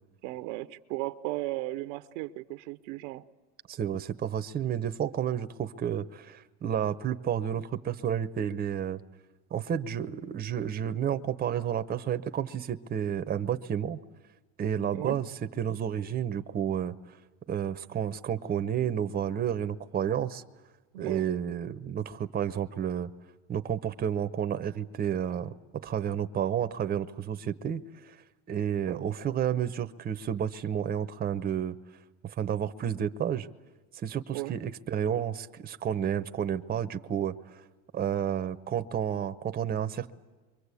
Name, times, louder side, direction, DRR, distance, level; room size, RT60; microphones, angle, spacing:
voice 1, 0.2-3.2 14.9-15.2 20.9-21.3 28.9-29.0 34.3-34.5, right 18 dB, 75° right, 0.8 m, -36 dB
voice 2, 3.7-9.0 9.5-14.0 14.6-17.0 17.5-20.4 21.0-23.1 23.5-28.2 28.5-31.8 32.2-33.5 34.0-37.6 37.9-40.1, right 9 dB, 25° right, 0.8 m, -31 dB
27.0 x 23.5 x 8.4 m
supercardioid pair, 110°, 36 cm